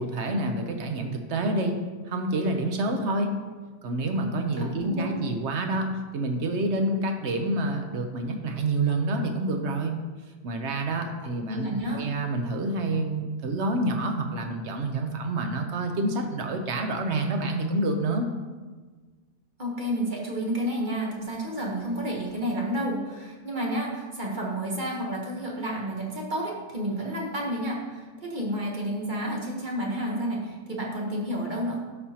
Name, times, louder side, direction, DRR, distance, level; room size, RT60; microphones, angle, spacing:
voice 1, 0.0-1.8 2.1-3.3 3.8-10.0 10.4-18.3, right 2 dB, 55° right, 4 dB, 0.9 m, -28 dB
voice 2, 4.6-5.2 11.5-12.1 19.6-31.8, right 1 dB, 35° right, -2 dB, 1.1 m, -30 dB
12.0 x 4.3 x 2.8 m, 1.4 s
omnidirectional pair, 1.6 m